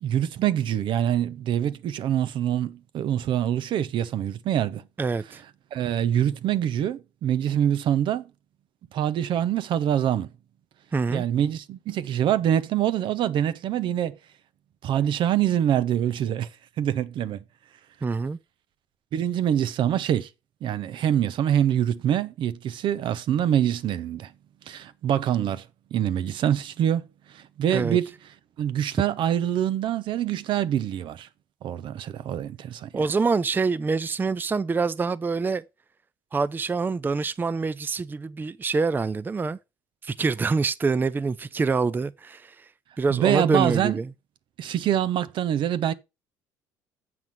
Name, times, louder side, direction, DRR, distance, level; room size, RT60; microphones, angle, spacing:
voice 1, 0.0-4.8 5.7-8.2 8.9-10.3 11.1-14.1 14.8-16.5 16.8-17.4 19.1-20.3 20.6-24.3 24.7-25.6 25.9-28.1 28.6-31.3 31.6-33.0 43.1-44.0 44.6-45.9, right 10 dB, 55° right, 0.8 m, -25 dB
voice 2, 5.0-5.4 10.9-11.2 18.0-18.4 27.7-28.0 32.9-35.6 36.3-39.6 40.0-42.7 43.0-44.1, right 4 dB, 20° right, 0.4 m, -25 dB
7.7 x 5.8 x 5.3 m
hypercardioid pair, 60°, 10 cm